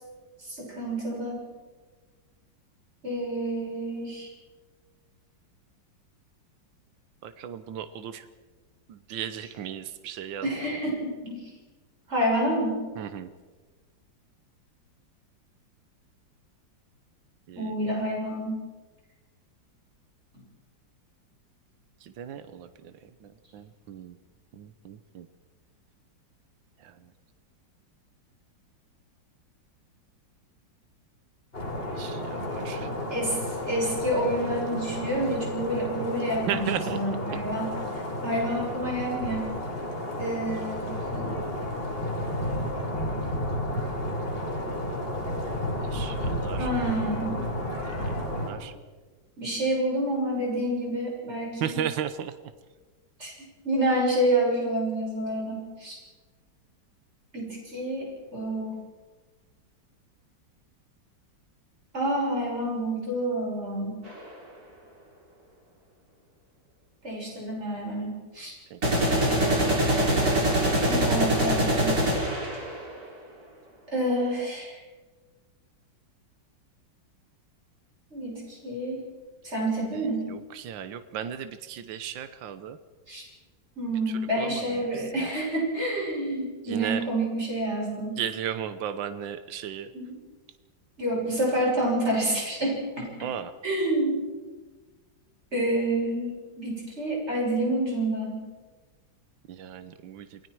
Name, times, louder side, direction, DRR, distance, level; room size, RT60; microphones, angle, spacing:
voice 1, 0.4-1.5 3.0-4.3 10.4-11.5 12.1-12.8 17.6-18.6 33.1-33.4 33.7-37.7 38.2-39.6 40.2-41.5 46.6-47.4 49.4-51.8 53.2-56.0 57.3-58.8 61.9-64.0 67.0-68.6 70.6-72.0 73.9-74.8 78.1-79.0 79.4-80.3 83.1-83.2 83.8-88.2 89.9-90.2 91.0-93.1 93.6-94.2 95.5-98.4, right 1 dB, 35° right, -3 dB, 7.1 m, -28 dB
voice 2, 7.2-8.3 8.9-10.5 13.0-13.3 17.5-17.8 22.0-22.9 23.2-24.2 24.6-25.3 26.8-26.9 32.0-32.9 36.5-37.0 45.9-46.7 47.9-48.7 51.6-52.3 68.7-68.8 79.9-80.0 80.3-82.8 84.4-85.3 86.7-87.0 88.2-89.9 93.2-93.5 99.5-100.4, right 9 dB, 80° right, 11 dB, 1.7 m, -35 dB
sound 1, 31.5-48.5, left 1 dB, 30° left, 4.1 m, -32 dB
sound 2, 64.1-64.2 68.8-73.0, right 1 dB, 50° right, 5.1 m, -24 dB
28.5 x 20.0 x 4.7 m, 1.3 s
omnidirectional pair, 2.0 m